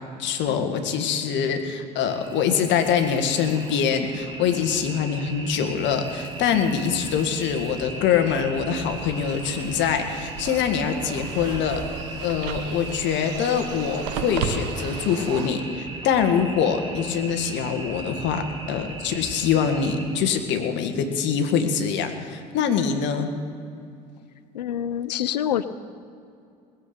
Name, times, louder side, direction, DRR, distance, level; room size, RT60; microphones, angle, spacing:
voice 1, 0.2-11.8 12.2-23.3, left 7 dB, 60° left, 6 dB, 1.8 m, -24 dB
sound 1, 2.0-20.0, right 2 dB, 25° right, 3.3 m, -38 dB
sound 2, 8.8-15.5, right 7 dB, 80° right, 1.2 m, -34 dB
voice 2, 24.5-25.6, left 10 dB, 90° left, 14 dB, 0.6 m, -27 dB
20.0 x 7.7 x 6.9 m, 2.4 s
hypercardioid pair, 65°, 21 cm